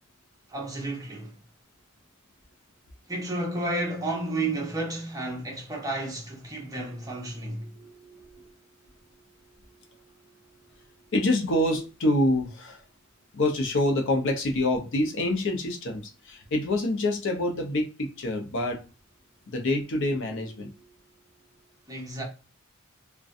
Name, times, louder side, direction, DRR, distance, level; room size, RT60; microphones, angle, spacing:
voice 1, 0.5-1.4 3.1-7.7 21.9-22.2, right 2 dB, 15° right, 0.7 m, -32 dB
voice 2, 7.6-8.6 11.1-12.8 13.3-18.8 19.5-20.8, left 1 dB, 60° left, 0.6 m, -27 dB
2.4 x 2.2 x 2.5 m
head